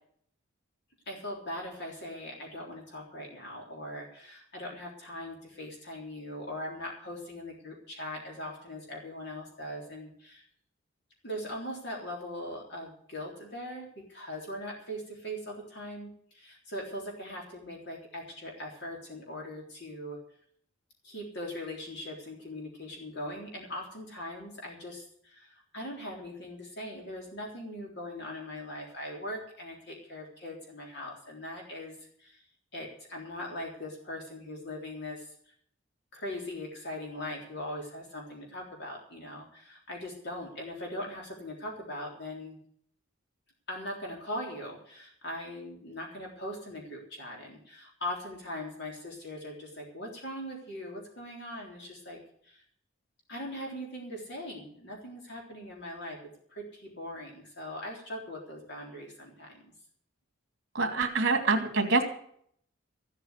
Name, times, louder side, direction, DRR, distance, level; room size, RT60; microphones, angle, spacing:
voice 1, 1.1-10.4 11.2-20.2 21.0-32.4 32.7-35.5 36.1-42.6 43.7-52.6 53.3-56.2 56.5-59.7, left 1 dB, 50° left, -1 dB, 3.7 m, -40 dB
voice 2, 60.7-62.0, right 3 dB, 50° right, 5 dB, 2.6 m, -25 dB
14.5 x 8.3 x 8.1 m, 0.62 s
head